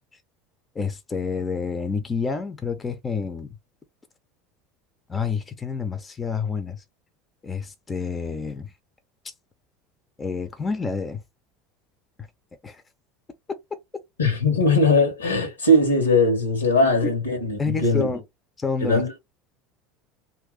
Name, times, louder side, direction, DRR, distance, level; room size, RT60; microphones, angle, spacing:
voice 1, 0.7-3.6 5.1-6.8 7.4-8.7 10.2-11.2 12.6-12.8 17.0-17.2 17.6-18.2 18.6-19.2, left 5 dB, 20° left, 0.7 m, -28 dB
voice 2, 14.2-18.1 18.8-19.2, left 2 dB, 85° left, 1.4 m, -20 dB
2.9 x 2.8 x 3.7 m
figure-of-eight pair, 70°, 0 cm